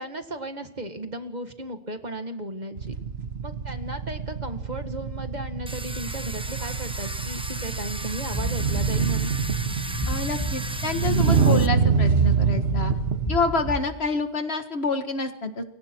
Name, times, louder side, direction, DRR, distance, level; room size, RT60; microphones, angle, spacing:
voice 1, 0.0-2.9 3.4-9.4, right 1 dB, 45° right, 7 dB, 1.9 m, -35 dB
sound 1, 2.8-13.7, right 6 dB, 80° right, 1.6 m, -25 dB
Domestic sounds home sounds, 5.7-11.7, right 1 dB, 5° right, 0.9 m, -36 dB
sound 2, 8.3-14.0, right 1 dB, 30° left, 7.1 m, -32 dB
voice 2, 10.1-12.9 13.3-15.6, left 3 dB, 90° left, 7 dB, 2.0 m, -27 dB
29.0 x 23.5 x 4.6 m, 0.78 s
omnidirectional pair, 1.0 m